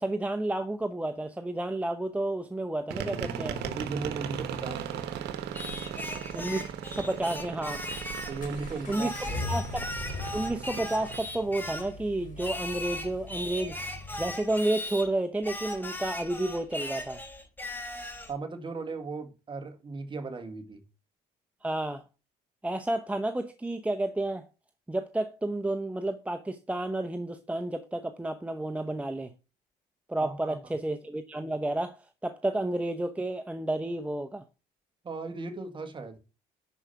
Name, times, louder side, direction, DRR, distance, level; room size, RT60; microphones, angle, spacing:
voice 1, 0.0-3.6 6.3-7.8 8.9-9.1 9.4-9.9 10.3-13.8 14.2-17.2 21.6-22.0 22.6-24.4 24.9-29.3 30.1-32.0 32.2-34.4, right 1 dB, 10° right, 0.7 m, -31 dB
sound 1, 2.9-11.2, right 8 dB, 80° right, 1.2 m, -37 dB
voice 2, 3.6-5.1 8.3-9.5 18.3-20.8 30.2-30.7 35.0-36.2, right 3 dB, 30° right, 1.8 m, -37 dB
Singing, 5.5-8.4 8.9-11.9 12.4-15.1 15.4-18.3, left 1 dB, 10° left, 3.4 m, -38 dB
Accelerating revving vroom, 7.8-14.3, left 3 dB, 50° left, 4.3 m, -41 dB
11.0 x 4.9 x 5.7 m
cardioid pair, 110°, 17 cm